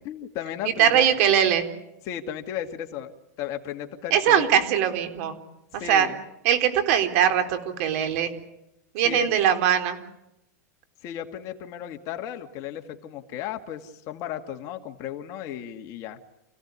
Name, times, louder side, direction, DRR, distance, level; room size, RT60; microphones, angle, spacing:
voice 1, 0.0-1.0 2.1-3.1 3.4-4.7 5.8-6.2 9.0-9.3 11.0-16.2, left 10 dB, 40° left, 5 dB, 2.2 m, -35 dB
voice 2, 0.6-1.7 4.1-5.4 5.7-6.1 6.4-8.3 8.9-10.0, right 9 dB, 55° right, 8 dB, 3.8 m, -21 dB
29.5 x 17.0 x 9.8 m, 0.88 s
supercardioid pair, 150°, 9 cm